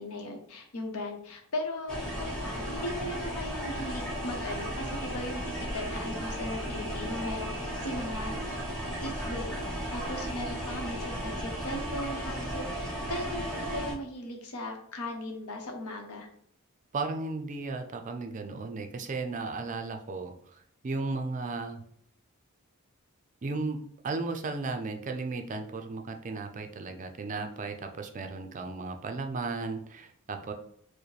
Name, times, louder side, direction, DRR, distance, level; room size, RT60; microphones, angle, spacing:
voice 1, 0.0-8.4 9.0-9.6 9.9-16.3, left 1 dB, 80° left, 3 dB, 0.8 m, -38 dB
sound 1, 1.9-13.9, equal, 5° left, 0.9 m, -35 dB
voice 2, 16.9-20.3 20.8-21.8 23.4-30.5, right 3 dB, 35° right, 5 dB, 0.4 m, -35 dB
4.7 x 2.1 x 3.2 m, 0.68 s
head